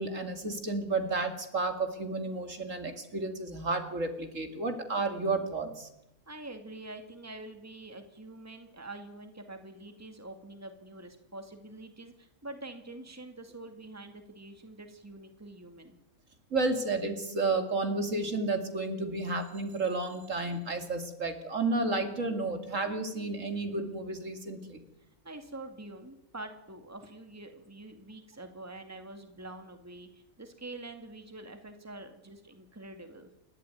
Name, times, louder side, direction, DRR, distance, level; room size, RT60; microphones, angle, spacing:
voice 1, 0.0-5.9 16.5-24.8, right 3 dB, 60° right, 6 dB, 2.9 m, -32 dB
voice 2, 6.3-16.0 25.2-33.3, right 2 dB, 10° right, 6 dB, 2.3 m, -46 dB
29.0 x 13.0 x 9.2 m, 0.88 s
omnidirectional pair, 1.5 m